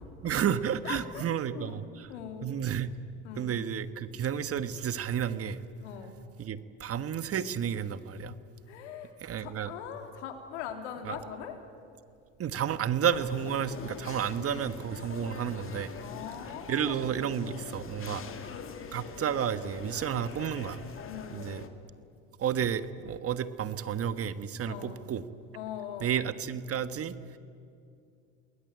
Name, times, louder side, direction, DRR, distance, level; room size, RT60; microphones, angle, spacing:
voice 1, 0.2-2.1 2.4-2.9 3.4-5.6 6.4-8.4 9.2-9.7 11.0-11.2 12.4-15.9 16.7-18.2 18.9-20.8 21.3-21.6 22.4-25.2 26.0-27.4, right 8 dB, 40° right, 12 dB, 1.5 m, -31 dB
voice 2, 0.8-1.8 2.1-2.5 3.2-3.6 5.8-6.2 8.7-9.1 9.4-11.6 15.9-17.4 18.1-18.4 21.1-21.5 24.6-25.0 25.5-26.2, left 8 dB, 90° left, 5 dB, 3.5 m, -41 dB
sound 1, 13.1-21.7, left 6 dB, 40° left, 2.8 m, -44 dB
28.5 x 20.5 x 9.2 m, 2.5 s
supercardioid pair, 90°, 34 cm